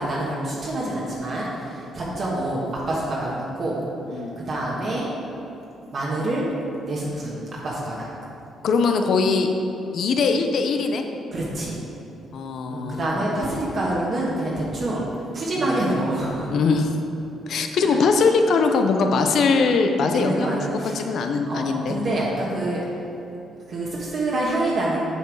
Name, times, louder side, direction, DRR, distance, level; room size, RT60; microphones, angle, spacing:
voice 1, 0.0-3.8 4.1-5.1 5.9-6.5 6.8-7.4 7.6-8.1 11.3-11.8 12.7-15.1 15.3-16.5 17.8-17.9 20.1-21.0 21.5-22.8 23.7-25.0, right 1 dB, 50° right, -5 dB, 1.3 m, -26 dB
voice 2, 8.6-9.5 9.9-11.0 12.3-13.1 15.7-15.8 16.5-17.0 17.5-20.6 20.9-22.0, left 4 dB, 65° left, 5 dB, 0.6 m, -21 dB
8.0 x 4.6 x 4.7 m, 2.9 s
cardioid pair, 90°, 0 cm